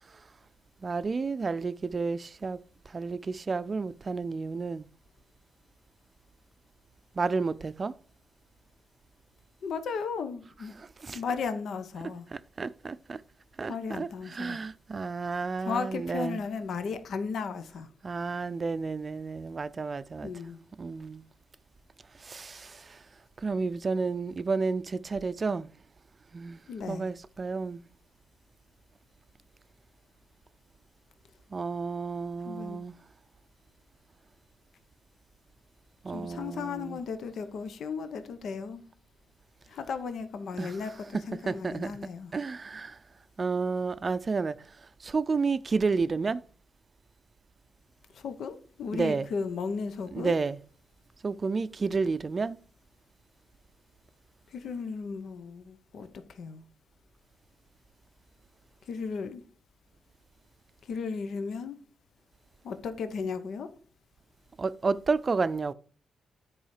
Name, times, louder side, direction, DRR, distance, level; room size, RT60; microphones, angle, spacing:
voice 1, 0.8-2.6 2.9-4.9 7.2-7.9 10.8-11.2 12.3-13.2 13.6-16.4 18.0-20.3 20.8-21.2 22.2-23.0 23.4-25.7 26.3-27.8 31.5-33.0 36.0-37.0 40.6-40.7 41.1-42.0 42.3-43.0 43.4-46.4 48.9-49.3 50.1-50.6 51.2-52.6 64.6-65.7, right 4 dB, 35° right, 0.4 m, -31 dB
voice 2, 9.6-10.7 11.1-12.3 13.7-14.6 15.6-17.9 20.2-20.6 26.7-27.1 32.4-32.8 36.1-38.8 39.7-42.3 48.1-50.4 54.5-56.6 58.9-59.4 60.8-61.8 62.6-63.7, left 5 dB, 75° left, 0.9 m, -35 dB
10.0 x 4.8 x 4.8 m
cardioid pair, 100°, 0 cm